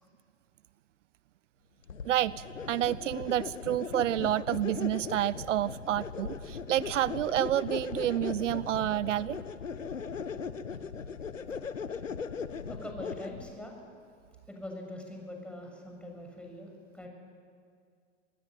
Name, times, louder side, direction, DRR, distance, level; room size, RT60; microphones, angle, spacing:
sound 1, 1.9-13.5, left 6 dB, 90° left, 1.1 m, -39 dB
voice 1, 2.0-9.4, right 12 dB, 75° right, 20 dB, 0.6 m, -29 dB
voice 2, 12.7-13.8 14.5-17.1, left 1 dB, 5° left, 1 dB, 7.0 m, -43 dB
26.0 x 20.0 x 9.2 m, 2.2 s
figure-of-eight pair, 90°, 38 cm